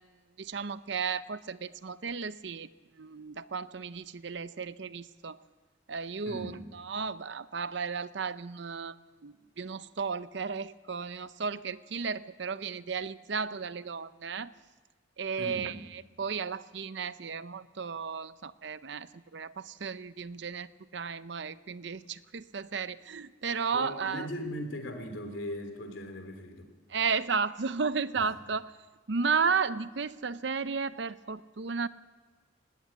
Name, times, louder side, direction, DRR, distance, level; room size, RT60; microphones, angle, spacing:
voice 1, 0.4-2.7 3.0-5.4 5.9-14.5 15.2-15.7 16.2-24.3 26.9-28.7 29.1-31.9, right 5 dB, 65° right, 15 dB, 0.6 m, -34 dB
voice 2, 6.3-6.7 15.4-15.8 23.7-26.7 28.2-28.3, equal, 80° left, 6 dB, 3.4 m, -39 dB
20.0 x 16.5 x 8.6 m, 1.3 s
head